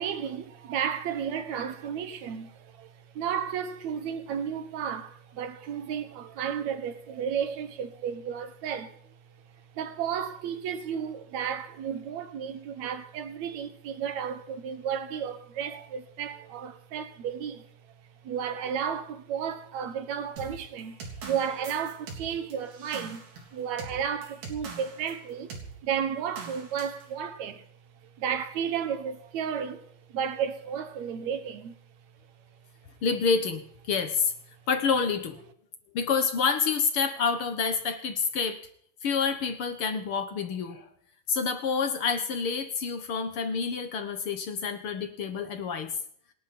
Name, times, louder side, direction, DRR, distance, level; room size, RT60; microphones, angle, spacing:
voice 1, 0.0-9.0 9.8-17.7 18.2-23.3 23.5-25.5 25.8-27.6 28.0-31.8, right 8 dB, 60° right, 2.2 m, -33 dB
sound 1, 20.4-25.2 25.5-25.7 26.4-27.0, right 4 dB, 85° right, 5.3 m, -42 dB
voice 2, 33.0-34.3 34.7-35.5 35.9-38.6 39.0-40.9 41.3-45.9, left 5 dB, 60° left, 1.5 m, -28 dB
28.0 x 11.5 x 4.4 m
omnidirectional pair, 4.1 m